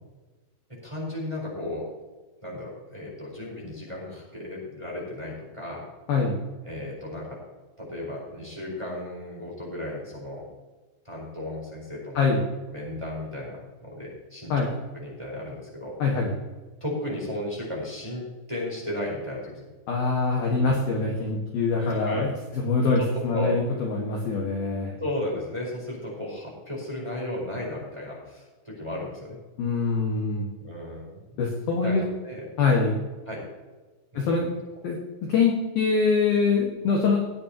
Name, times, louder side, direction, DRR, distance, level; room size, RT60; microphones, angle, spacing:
voice 1, 0.7-1.9 2.4-5.9 6.6-7.4 7.8-10.4 11.0-12.2 12.7-14.7 14.9-15.9 16.8-19.7 20.5-20.8 21.7-22.3 23.0-23.6 25.0-29.4 30.6-31.2 31.7-32.5 33.3-33.4 34.1-34.4, left 1 dB, 5° right, -3 dB, 3.7 m, -34 dB
voice 2, 16.0-16.3 19.9-25.0 29.6-30.5 31.4-32.0 32.6-33.0 34.2-34.5 34.8-35.0 35.3-37.2, left 4 dB, 65° left, -1 dB, 2.6 m, -24 dB
19.5 x 8.7 x 2.9 m, 1.2 s
omnidirectional pair, 6.0 m